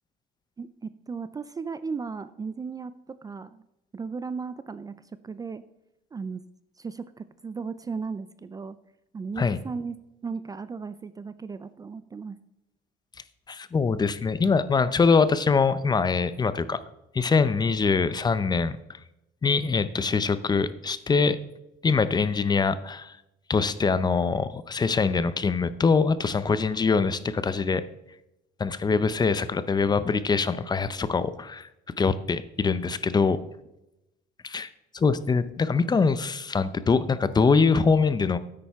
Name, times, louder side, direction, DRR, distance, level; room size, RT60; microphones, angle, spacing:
voice 1, 0.6-3.6 3.9-5.6 6.1-6.4 6.8-8.8 9.1-10.0 10.2-12.4, right 5 dB, 20° right, 14 dB, 0.4 m, -36 dB
voice 2, 13.5-16.8 17.1-18.8 19.4-21.4 21.8-23.2 23.5-27.8 28.6-31.7 32.0-33.4 34.4-34.7 34.9-38.4, left 4 dB, 25° left, 14 dB, 0.6 m, -23 dB
10.0 x 8.7 x 3.6 m, 0.89 s
cardioid pair, 110°, 17 cm